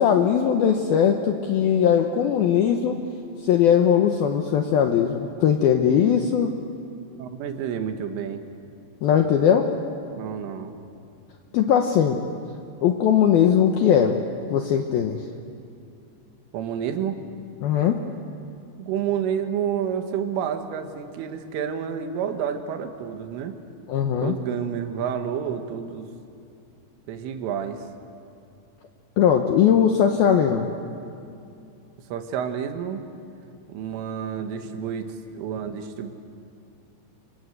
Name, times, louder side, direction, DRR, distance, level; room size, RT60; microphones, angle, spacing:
voice 1, 0.0-3.0 3.4-6.5 9.0-9.7 11.5-12.2 12.8-14.2 14.5-15.2 17.6-18.0 23.9-24.4 29.2-30.7, left 8 dB, 75° left, 4 dB, 2.3 m, -19 dB
voice 2, 7.2-8.4 10.2-10.8 16.5-17.2 18.8-23.5 24.2-26.1 27.1-27.8 32.1-33.0 33.7-36.1, right 8 dB, 80° right, 6 dB, 4.1 m, -29 dB
27.5 x 25.5 x 8.1 m, 2.5 s
omnidirectional pair, 5.6 m